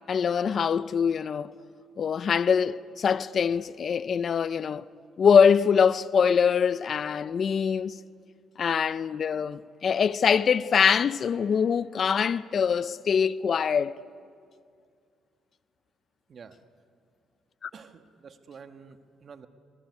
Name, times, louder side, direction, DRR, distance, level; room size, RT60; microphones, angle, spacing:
voice 1, 0.1-1.5 2.0-4.9 5.2-8.0 8.6-13.9 17.6-17.7, left 6 dB, 50° left, 0.6 m, -23 dB
voice 2, 17.7-19.5, right 6 dB, 50° right, 1.5 m, -48 dB
23.5 x 23.0 x 9.7 m
cardioid pair, 90°, 0 cm